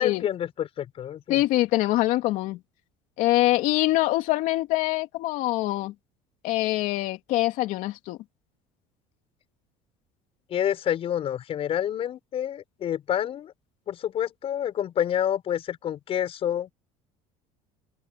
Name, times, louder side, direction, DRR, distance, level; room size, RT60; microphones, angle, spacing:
voice 1, 0.0-1.4 10.5-13.5 13.9-16.7, left 10 dB, 45° left, 5.9 m, -28 dB
voice 2, 1.3-2.6 3.2-5.9 6.4-8.2, left 17 dB, 65° left, 2.7 m, -24 dB
open air
cardioid pair, 135°, 14 cm